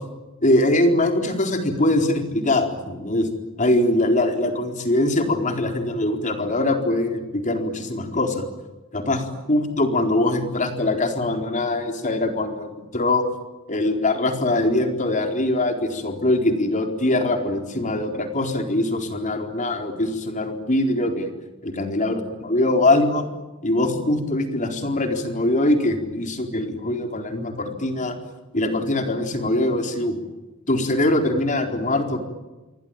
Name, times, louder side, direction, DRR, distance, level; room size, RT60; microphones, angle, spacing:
voice 1, 0.4-3.3 3.6-8.5 8.9-13.2 13.7-21.3 21.6-23.3 23.6-28.2 28.5-30.2 30.7-32.2, left 1 dB, 40° left, 4 dB, 4.3 m, -22 dB
28.0 x 23.0 x 9.1 m, 1.1 s
head